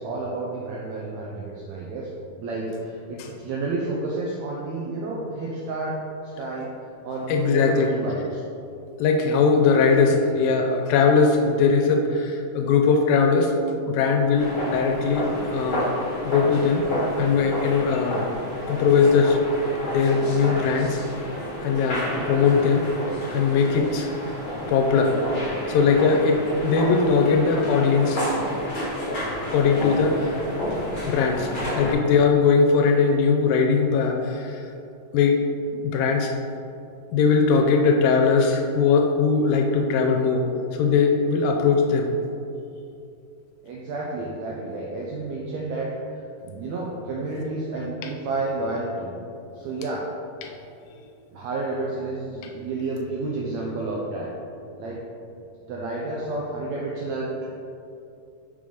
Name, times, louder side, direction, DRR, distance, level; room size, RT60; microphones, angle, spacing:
voice 1, 0.0-2.1 2.4-6.7 7.0-8.4 10.0-10.2 14.8-15.0 30.1-30.2 43.6-49.1 49.5-50.1 51.3-54.3 54.8-55.0 55.7-57.5, right 2 dB, 85° right, -3 dB, 1.6 m, -30 dB
voice 2, 7.3-7.9 9.0-13.5 13.8-15.9 16.2-16.9 17.1-18.3 18.7-19.4 19.9-21.0 21.6-22.8 23.3-24.1 24.7-25.2 25.7-28.2 29.5-30.3 31.1-31.5 31.8-34.7 35.1-35.4 35.8-36.4 37.1-40.5 40.7-42.1 50.4-50.5, left 5 dB, 90° left, 2 dB, 2.3 m, -20 dB
sound 1, 14.4-31.9, equal, 45° left, 0.6 m, -30 dB
5.3 x 5.2 x 5.0 m, 2.7 s
omnidirectional pair, 3.9 m